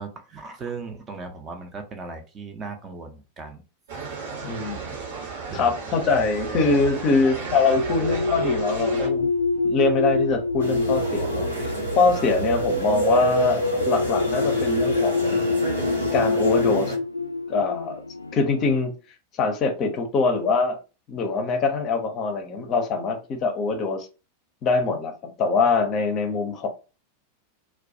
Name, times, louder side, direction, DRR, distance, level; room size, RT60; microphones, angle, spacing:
voice 1, 0.0-3.6 5.5-5.8, right 4 dB, 25° right, 0.5 m, -37 dB
sound 1, 3.9-9.1, right 5 dB, 60° right, 0.9 m, -34 dB
voice 2, 4.4-4.9 5.5-9.3 9.6-15.4 16.1-16.9 17.5-18.0 18.3-18.9 19.3-20.8 21.1-24.1 24.6-26.7, left 4 dB, 35° left, 0.5 m, -23 dB
sound 2, 7.7-18.7, left 2 dB, 85° left, 0.3 m, -25 dB
sound 3, 10.6-17.0, right 2 dB, 90° right, 0.8 m, -31 dB
2.3 x 2.1 x 2.6 m
figure-of-eight pair, 90°, 0 cm